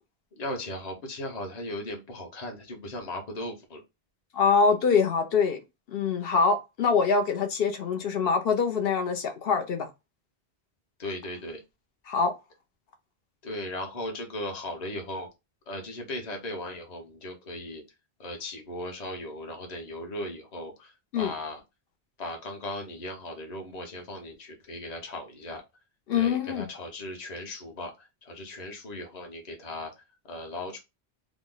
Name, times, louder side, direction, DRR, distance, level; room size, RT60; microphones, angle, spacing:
voice 1, 0.3-3.8 11.0-11.6 13.4-15.3 15.7-17.8 18.2-21.6 22.2-25.6 26.1-29.9 30.3-30.8, left 1 dB, 45° left, 1.0 m, -37 dB
voice 2, 4.3-5.6 5.9-9.9 12.1-12.3 21.1-21.3 26.1-26.7, left 5 dB, 70° left, 0.9 m, -24 dB
3.6 x 2.0 x 3.7 m
omnidirectional pair, 1.1 m